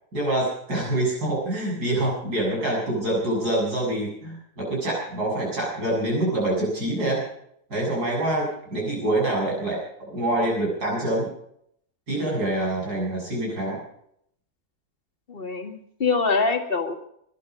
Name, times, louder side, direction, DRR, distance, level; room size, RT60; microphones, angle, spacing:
voice 1, 0.1-7.3 7.7-9.8 10.1-11.3 12.1-13.8, right 1 dB, 90° right, -3 dB, 8.4 m, -25 dB
voice 2, 15.3-16.9, left 4 dB, 35° left, 5 dB, 2.0 m, -24 dB
21.0 x 12.5 x 5.3 m, 0.70 s
omnidirectional pair, 1.6 m